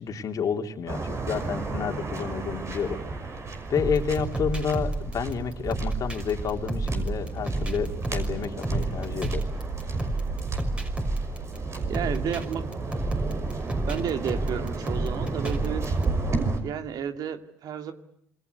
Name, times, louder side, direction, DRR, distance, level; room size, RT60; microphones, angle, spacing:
voice 1, 0.0-3.0 3.7-9.4, left 6 dB, 50° left, 5 dB, 3.3 m, -30 dB
Waves surf, 0.9-16.6, right 3 dB, 40° right, 5.8 m, -32 dB
sound 1, 3.8-16.0, right 2 dB, 15° right, 5.8 m, -31 dB
voice 2, 11.9-12.7 13.9-15.8 16.6-17.9, right 8 dB, 60° right, 8 dB, 2.4 m, -32 dB
27.0 x 23.5 x 8.3 m, 0.74 s
hypercardioid pair, 60°, 8 cm